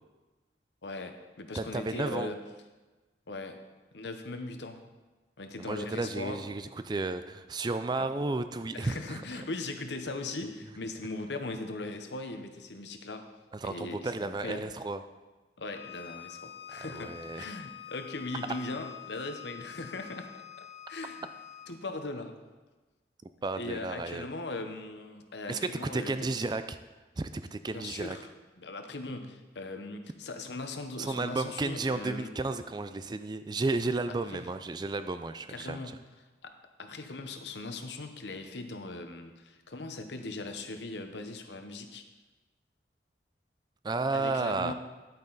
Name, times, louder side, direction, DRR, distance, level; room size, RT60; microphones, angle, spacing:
voice 1, 0.8-2.4 3.3-3.6 3.9-4.8 5.4-6.4 8.0-8.1 8.7-13.3 13.6-14.7 15.6-21.3 21.7-22.4 23.6-26.1 27.7-28.3 28.6-32.3 34.1-34.4 35.5-36.0 36.4-36.5 36.8-42.1 44.1-44.7, left 2 dB, 70° left, 7 dB, 0.9 m, -39 dB
voice 2, 1.5-2.3 5.6-9.2 13.5-15.0 16.7-17.4 23.4-24.3 25.5-26.8 27.2-28.2 31.0-35.8 43.8-44.7, right 3 dB, 25° right, 10 dB, 0.4 m, -33 dB
Bowed string instrument, 15.7-21.7, left 11 dB, 35° left, 1.1 m, -46 dB
11.0 x 8.7 x 4.0 m, 1.2 s
head